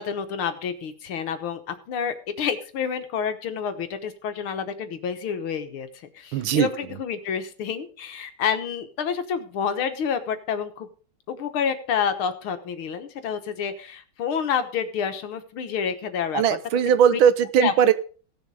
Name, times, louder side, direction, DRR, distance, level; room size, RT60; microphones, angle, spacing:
voice 1, 0.0-10.9 11.3-16.4 17.1-17.2 17.6-17.9, left 7 dB, 85° left, 8 dB, 2.1 m, -29 dB
voice 2, 6.3-6.7 16.3-17.9, right 8 dB, 80° right, 14 dB, 1.6 m, -19 dB
16.5 x 7.1 x 4.9 m, 0.41 s
omnidirectional pair, 2.3 m